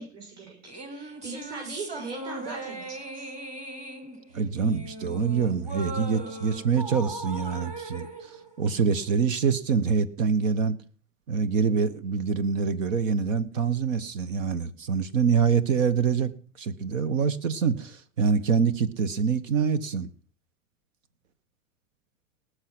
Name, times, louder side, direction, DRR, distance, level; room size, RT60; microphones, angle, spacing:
voice 1, 0.0-3.3, right 3 dB, 40° right, -1 dB, 7.2 m, -40 dB
sound 1, 0.6-9.2, right 2 dB, 20° right, 2.4 m, -39 dB
voice 2, 4.3-10.8 11.3-16.3 16.6-20.1, right 6 dB, 75° right, 16 dB, 1.4 m, -25 dB
19.0 x 6.7 x 6.1 m, 0.40 s
hypercardioid pair, 100°, 38 cm